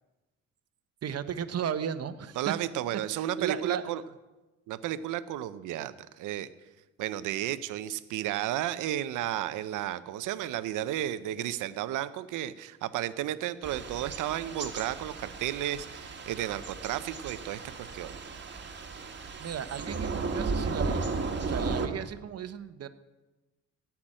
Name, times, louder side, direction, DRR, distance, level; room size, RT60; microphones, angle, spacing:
voice 1, 1.0-2.5 3.1-4.0 19.4-21.1 21.5-22.9, right 8 dB, 55° right, 12 dB, 1.0 m, -35 dB
voice 2, 2.4-4.0 4.7-6.5 7.0-18.1, right 12 dB, 90° right, 13 dB, 0.8 m, -33 dB
Thunder / Rain, 13.6-21.9, right 4 dB, 35° right, 1.9 m, -35 dB
16.5 x 6.0 x 8.8 m, 1.1 s
cardioid pair, 90°, 30 cm